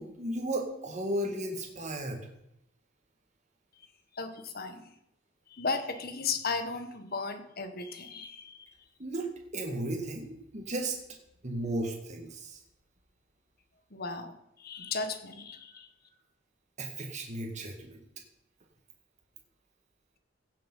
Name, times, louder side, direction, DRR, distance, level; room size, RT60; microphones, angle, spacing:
voice 1, 0.0-2.3 9.0-9.3 9.5-11.0 11.4-12.6 16.8-18.0, right 1 dB, 35° right, 1 dB, 1.9 m, -34 dB
voice 2, 4.1-4.9 5.5-8.7 13.9-14.3 14.6-15.9, left 4 dB, 50° left, 8 dB, 1.6 m, -35 dB
16.0 x 7.3 x 5.6 m, 0.82 s
head